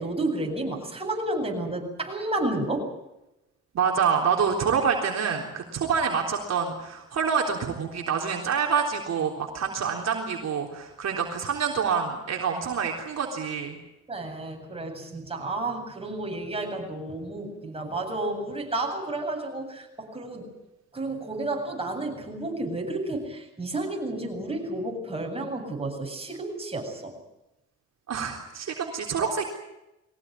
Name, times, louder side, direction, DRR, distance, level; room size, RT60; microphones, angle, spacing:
voice 1, 0.0-2.9 14.1-20.5 20.9-27.1, right 2 dB, 20° right, 2 dB, 8.0 m, -31 dB
voice 2, 3.7-13.8 28.1-29.4, right 6 dB, 60° right, 1 dB, 3.8 m, -27 dB
22.5 x 18.0 x 9.7 m, 0.92 s
cardioid pair, 90°, 30 cm